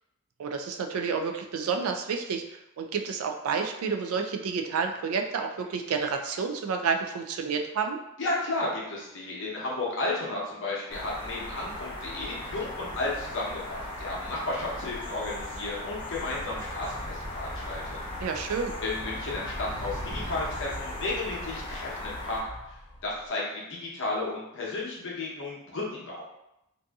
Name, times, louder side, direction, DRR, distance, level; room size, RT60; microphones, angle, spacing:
voice 1, 0.4-2.4 2.8-8.0 18.2-18.7, right 5 dB, 70° right, 4 dB, 0.3 m, -30 dB
voice 2, 8.2-18.2 18.8-22.5 23.0-26.2, left 2 dB, 60° left, -4 dB, 0.8 m, -33 dB
sound 1, 10.9-22.4, left 1 dB, 25° left, 0.6 m, -38 dB
Animal, 14.8-23.3, equal, 90° right, 1.1 m, -43 dB
2.6 x 2.6 x 2.3 m, 0.86 s
head